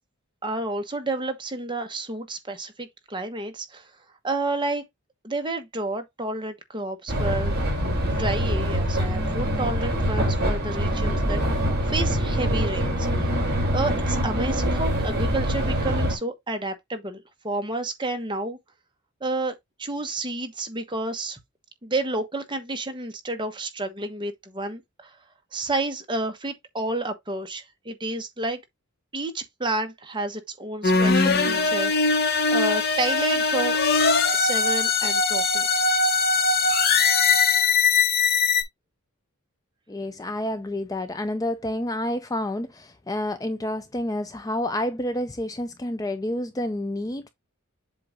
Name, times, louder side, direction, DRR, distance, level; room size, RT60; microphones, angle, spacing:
voice 1, 0.4-3.9 4.2-4.8 5.2-7.6 8.1-13.4 13.7-18.6 19.2-21.4 21.8-25.2 25.5-28.6 29.1-32.1 32.5-33.8 34.3-35.9, right 2 dB, 20° right, 1.1 m, -30 dB
sound 1, 7.1-16.1, equal, 45° right, 2.9 m, -24 dB
sound 2, 30.8-38.6, left 4 dB, 45° left, 1.1 m, -21 dB
voice 2, 39.9-47.3, left 1 dB, 15° left, 0.4 m, -29 dB
7.6 x 2.6 x 5.0 m
head